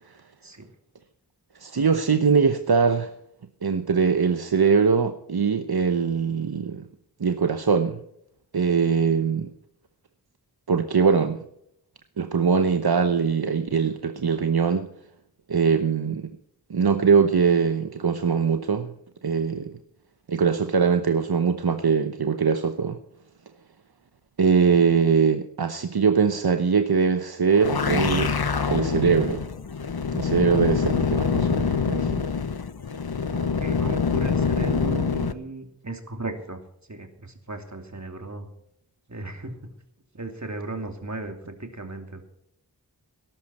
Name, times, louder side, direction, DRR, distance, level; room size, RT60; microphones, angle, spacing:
voice 1, 1.6-3.1 3.6-6.8 7.2-8.0 8.5-9.5 10.7-11.4 12.2-14.9 15.5-16.3 16.7-18.9 19.2-19.7 20.3-23.0 24.4-28.3 28.7-29.5 30.1-32.2, right 5 dB, 70° right, 1.0 m, -22 dB
sound 1, 27.5-35.3, left 5 dB, 70° left, 1.0 m, -25 dB
voice 2, 33.3-36.6 36.9-38.5 39.1-39.6 40.1-42.3, right 2 dB, 45° right, 2.8 m, -36 dB
18.5 x 11.5 x 4.3 m
wide cardioid pair, 55°, 39 cm